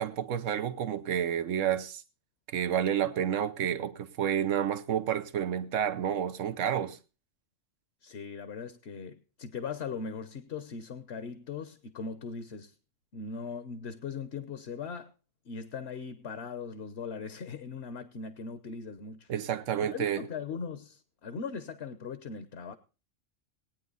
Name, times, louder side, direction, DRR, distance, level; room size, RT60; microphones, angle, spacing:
voice 1, 0.0-2.0 2.5-7.0 19.3-20.2, right 9 dB, 85° right, 1.2 m, -30 dB
voice 2, 8.0-12.7 13.1-15.1 15.5-19.3 19.9-22.8, left 5 dB, 60° left, 1.2 m, -39 dB
19.5 x 9.3 x 4.0 m
omnidirectional pair, 1.3 m